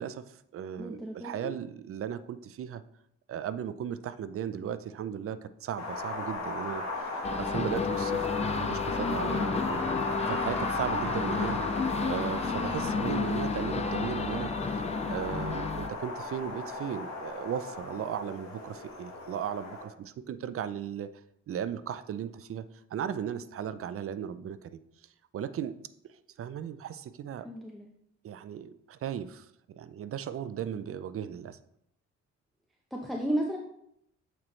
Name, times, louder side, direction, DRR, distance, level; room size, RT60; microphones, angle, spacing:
voice 1, 0.0-2.8 3.3-6.8 7.4-11.6 12.0-21.1 21.5-22.6 22.9-24.8 25.3-25.8 26.1-27.5 28.2-31.6, right 9 dB, 50° right, 14 dB, 0.5 m, -36 dB
voice 2, 0.8-1.5 27.4-27.9 32.9-33.6, right 1 dB, ahead, -1 dB, 0.8 m, -33 dB
Wind, 5.8-19.8, left 2 dB, 65° left, 1.6 m, -35 dB
sound 1, 7.2-15.9, left 5 dB, 20° left, 0.4 m, -32 dB
8.5 x 4.4 x 3.2 m, 0.74 s
cardioid pair, 90°, 30 cm